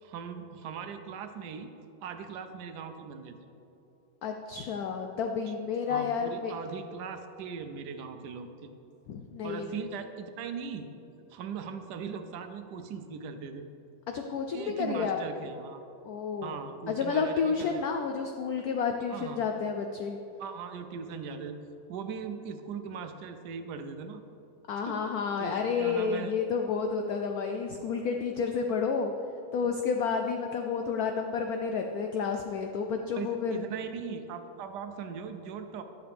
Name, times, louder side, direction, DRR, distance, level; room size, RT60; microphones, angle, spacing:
voice 1, 0.0-1.7 2.0-3.4 5.9-8.7 9.4-10.9 11.3-13.7 14.5-15.8 16.4-17.8 19.1-19.4 20.4-21.6 21.9-24.2 24.8-25.0 25.4-26.3 33.1-35.8, right 6 dB, 70° right, 8 dB, 1.1 m, -39 dB
voice 2, 4.2-6.5 9.1-9.7 14.1-15.2 16.0-16.6 16.9-20.2 24.7-29.1 29.5-33.6, left 5 dB, 80° left, 4 dB, 0.8 m, -30 dB
11.0 x 6.7 x 3.5 m, 2.9 s
omnidirectional pair, 2.1 m